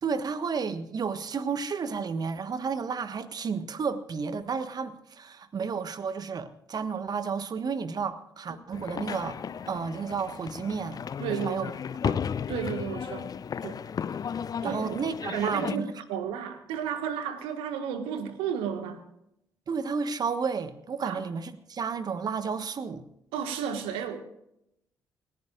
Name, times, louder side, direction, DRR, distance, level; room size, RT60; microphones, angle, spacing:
voice 1, 0.0-9.4 9.7-11.0 11.3-11.7 12.0-12.2 14.6-15.9 19.7-23.0, right 5 dB, 45° right, 11 dB, 1.4 m, -32 dB
sound 1, 8.7-15.8, left 7 dB, 40° left, 0.6 m, -34 dB
voice 2, 11.2-11.7 12.5-13.3 13.6-13.8 14.6-14.9 15.2-19.0 21.0-21.2 23.3-24.2, right 8 dB, 70° right, 8 dB, 1.7 m, -33 dB
28.5 x 15.5 x 2.5 m, 0.81 s
figure-of-eight pair, 40°, 9 cm